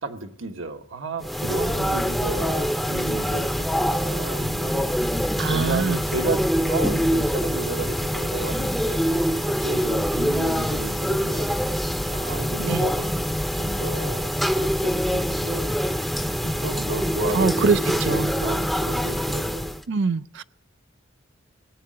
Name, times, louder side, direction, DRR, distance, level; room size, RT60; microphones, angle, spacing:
voice 1, 0.0-5.0 5.5-9.0 9.5-11.5 12.1-15.7 16.4-19.6, right 3 dB, 75° right, 5 dB, 1.4 m, -33 dB
sound 1, 1.2-19.8, equal, ahead, 0.6 m, -24 dB
voice 2, 5.4-6.0 12.6-12.9 17.3-18.3 19.9-20.4, right 5 dB, 60° right, 15 dB, 0.5 m, -24 dB
17.5 x 8.4 x 7.8 m, 0.70 s
head